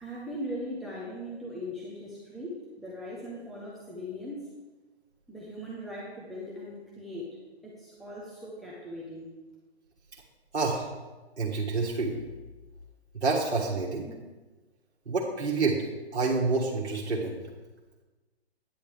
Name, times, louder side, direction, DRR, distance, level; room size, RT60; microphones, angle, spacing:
voice 1, 0.0-4.5 5.3-7.4 7.6-9.3, equal, ahead, -6 dB, 0.6 m, -39 dB
voice 2, 10.5-10.9 11.4-12.1 13.1-14.1 15.1-15.8 16.1-17.4, right 3 dB, 85° right, -3 dB, 1.5 m, -28 dB
9.7 x 8.7 x 3.5 m, 1.2 s
hypercardioid pair, 135°, 33 cm